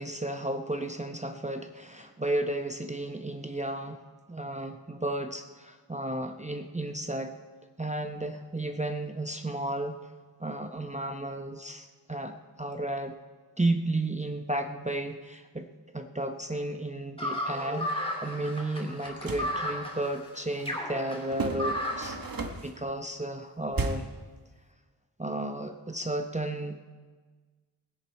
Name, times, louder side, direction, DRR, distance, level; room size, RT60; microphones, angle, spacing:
voice 1, 0.0-4.0 4.3-7.3 7.8-10.0 10.4-13.2 13.6-15.7 15.9-22.2 22.6-24.1 25.2-26.8, right 1 dB, 15° right, 5 dB, 0.7 m, -33 dB
sound 1, 17.2-22.2, left 1 dB, 15° left, 2.7 m, -34 dB
sound 2, 19.0-19.6 21.3-22.8 23.7-24.2, right 3 dB, 50° right, 1.2 m, -34 dB
19.5 x 10.5 x 4.6 m, 1.4 s
wide cardioid pair, 70°, 43 cm